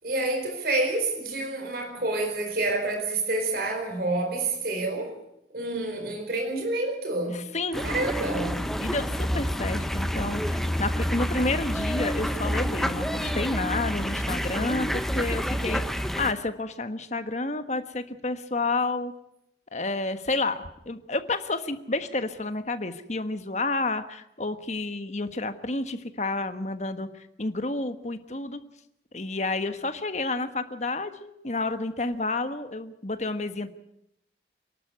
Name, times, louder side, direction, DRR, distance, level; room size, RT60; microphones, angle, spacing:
voice 1, 0.0-5.1 5.5-7.4 7.8-8.6, right 2 dB, 55° right, 4 dB, 4.6 m, -28 dB
voice 2, 7.3-7.8 8.8-19.1 19.7-27.1 27.4-28.6 29.1-33.7, left 2 dB, 40° left, 9 dB, 1.4 m, -30 dB
sound 1, 7.7-16.3, equal, ahead, 0.9 m, -28 dB
27.5 x 12.0 x 9.4 m, 0.80 s
head